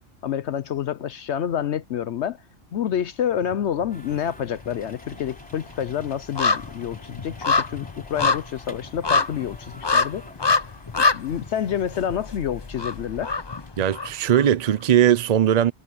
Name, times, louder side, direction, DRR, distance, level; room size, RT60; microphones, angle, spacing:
voice 1, 0.2-2.4 2.7-10.2 11.1-13.4, left 9 dB, 65° left, 0.9 m, -28 dB
sound 1, 3.4-4.2 4.5-14.4 14.8-14.9, left 4 dB, 25° left, 0.6 m, -26 dB
sound 2, 3.9-13.7, equal, 5° left, 3.8 m, -49 dB
voice 2, 13.8-15.7, right 10 dB, 60° right, 0.4 m, -19 dB
omnidirectional pair, 1.3 m